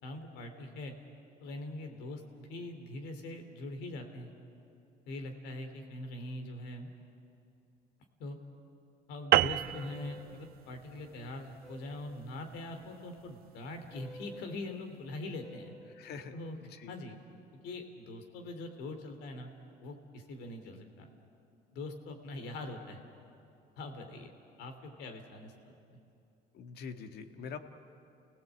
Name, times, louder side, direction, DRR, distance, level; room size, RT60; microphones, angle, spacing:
voice 1, 0.0-1.0 1.4-4.3 5.1-6.9 8.2-8.4 9.1-15.7 16.3-16.6 16.9-17.2 17.6-19.5 19.8-21.1 21.7-23.0 23.8-24.3 24.6-25.5 25.9-26.0, left 2 dB, 90° left, 5 dB, 2.9 m, -42 dB
sound 1, 9.3-14.1, right 14 dB, 65° right, 0.5 m, -32 dB
sound 2, 9.5-10.4 11.6-12.2 13.9-14.6 15.4-16.0, equal, ahead, 2.2 m, -52 dB
voice 2, 16.0-16.3 16.7-16.9 26.5-27.6, left 6 dB, 70° left, 7 dB, 1.7 m, -44 dB
29.5 x 17.5 x 8.3 m, 2.7 s
cardioid pair, 110°, 17 cm